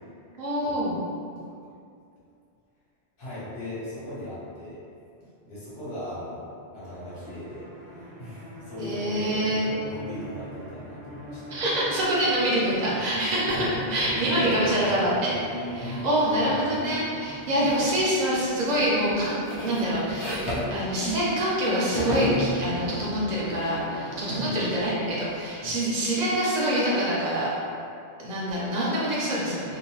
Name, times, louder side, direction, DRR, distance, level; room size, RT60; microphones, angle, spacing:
voice 1, 0.4-1.0 8.8-9.6 11.5-27.5 28.2-29.8, right 1 dB, 45° right, -7 dB, 0.7 m, -26 dB
voice 2, 3.2-4.8 5.4-6.5 6.7-7.6 8.2-11.5 13.5-13.7 14.1-14.6 15.8-16.0 24.2-24.6 25.6-25.7, left 1 dB, 55° left, -11 dB, 1.2 m, -37 dB
sound 1, 6.8-25.5, right 2 dB, 70° right, 0.9 m, -41 dB
sound 2, 13.5-16.8 17.7-18.0 18.3-21.6 21.9-25.4, left 1 dB, 25° left, 0.6 m, -35 dB
2.7 x 2.1 x 3.0 m, 2.4 s
omnidirectional pair, 1.1 m